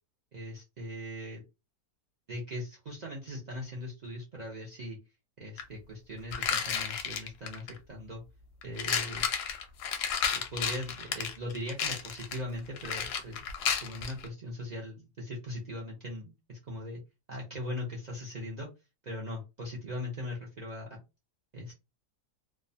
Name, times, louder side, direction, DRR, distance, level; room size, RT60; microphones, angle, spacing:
voice 1, 0.3-1.4 2.3-5.0 5.4-8.2 8.6-9.2 10.3-13.5 13.8-17.0 17.3-18.7 19.0-21.0 21.5-21.7, left 1 dB, 85° right, -3 dB, 0.3 m, -40 dB
sound 1, 5.6-5.7 6.3-7.8 8.6-14.3, left 7 dB, 70° left, 0.8 m, -32 dB
2.7 x 2.1 x 2.6 m, 0.26 s
omnidirectional pair, 1.7 m